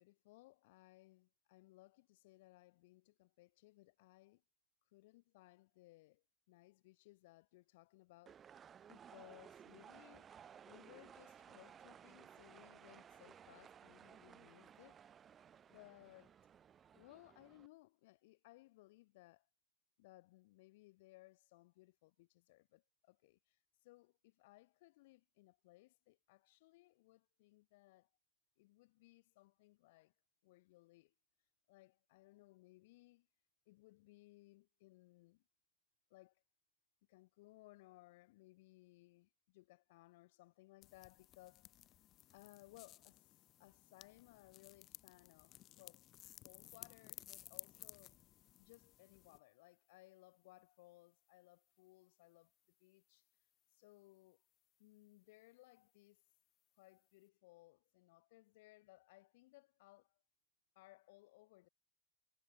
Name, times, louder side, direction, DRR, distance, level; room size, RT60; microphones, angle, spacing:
voice 1, 0.0-4.4 4.9-10.3 10.7-15.0 15.7-16.4 16.9-19.5 20.0-28.1 28.6-30.1 30.4-31.1 31.7-33.3 33.6-35.4 36.1-36.4 37.1-41.8 42.3-46.1 46.4-48.2 48.6-52.5 52.8-53.2 53.7-54.4 54.8-56.2 56.7-60.2 60.7-61.7, left 20 dB, 65° left, 5.1 m, -64 dB
sound 1, 8.3-17.7, right 8 dB, 30° right, 2.1 m, -59 dB
sound 2, 40.8-49.4, left 14 dB, 45° left, 1.4 m, -58 dB
hypercardioid pair, 95°, 0 cm